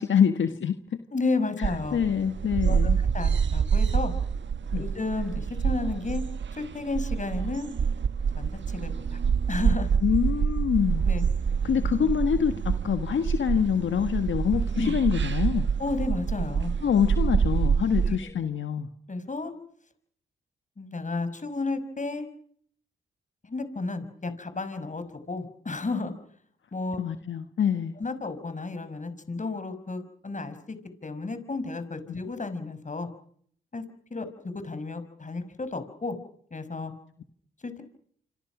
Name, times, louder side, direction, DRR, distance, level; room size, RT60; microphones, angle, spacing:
voice 1, 0.0-1.0 1.6-3.0 4.7-4.8 10.0-11.1 11.6-15.7 16.8-18.9 27.0-27.9 32.1-32.2, left 8 dB, 70° left, 8 dB, 1.6 m, -26 dB
voice 2, 1.1-2.0 2.7-4.1 4.7-6.2 6.5-7.7 8.3-9.2 9.5-9.9 11.0-11.2 14.7-14.9 15.8-16.7 17.9-18.3 19.1-19.5 20.8-22.3 23.4-26.1 26.7-27.0 28.0-30.8 31.0-33.1 33.7-33.8 34.1-36.2 36.5-36.9 37.6-37.8, left 3 dB, 40° left, 10 dB, 5.6 m, -32 dB
sound 1, 1.6-18.1, right 6 dB, 65° right, 1.5 m, -27 dB
26.5 x 26.5 x 6.1 m, 0.63 s
cardioid pair, 60°, 21 cm